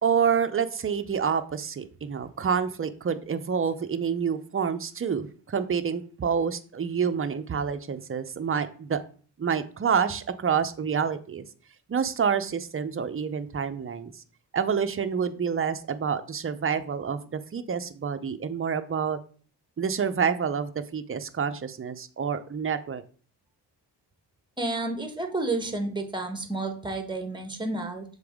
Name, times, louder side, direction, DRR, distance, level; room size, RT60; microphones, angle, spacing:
voice 1, 0.0-9.0 9.4-11.4 11.9-14.1 14.5-19.2 19.8-23.0, right 7 dB, 30° right, 10 dB, 0.6 m, -28 dB
voice 2, 24.6-28.0, right 2 dB, 10° right, 6 dB, 1.2 m, -30 dB
6.6 x 4.0 x 3.6 m, 0.41 s
cardioid pair, 80°, 43 cm